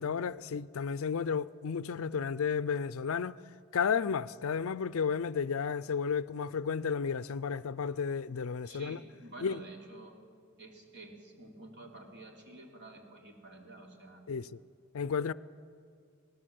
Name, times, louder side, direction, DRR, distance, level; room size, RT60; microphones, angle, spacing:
voice 1, 0.0-3.4 3.7-9.0 9.4-9.6 14.3-14.6 14.9-15.3, left 6 dB, 65° left, 0.4 m, -32 dB
voice 2, 8.6-10.2 10.6-14.2, right 2 dB, 50° right, 3.3 m, -50 dB
19.0 x 19.0 x 7.7 m
head